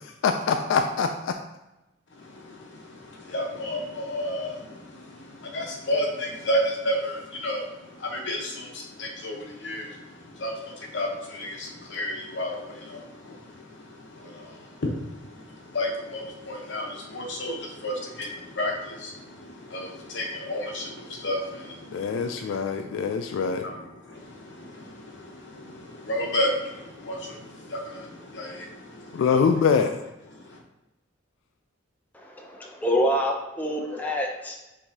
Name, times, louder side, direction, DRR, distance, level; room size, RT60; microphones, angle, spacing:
voice 1, 0.2-1.3 21.9-23.6 29.1-29.9, left 5 dB, 80° left, 6 dB, 0.3 m, -24 dB
voice 2, 2.1-29.5 30.3-30.6, equal, 65° left, 0 dB, 0.9 m, -33 dB
voice 3, 32.1-34.6, equal, 10° left, 0 dB, 0.4 m, -26 dB
4.7 x 3.5 x 2.7 m, 0.98 s
head